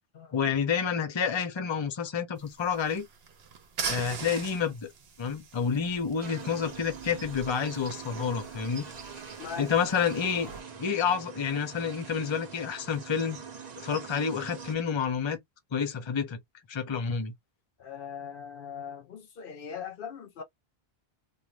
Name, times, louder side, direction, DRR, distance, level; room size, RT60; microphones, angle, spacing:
voice 1, 0.3-3.1 3.9-4.9 5.2-8.9 9.6-10.5 10.8-13.4 13.8-15.4 15.7-16.4 16.7-17.3, left 6 dB, 35° left, 0.6 m, -29 dB
sound 1, 2.4-10.6, right 5 dB, 80° right, 1.0 m, -42 dB
sound 2, 6.2-14.8, right 5 dB, 45° right, 0.8 m, -43 dB
voice 2, 17.8-20.4, left 7 dB, 65° left, 0.7 m, -40 dB
2.5 x 2.3 x 3.1 m
omnidirectional pair, 1.0 m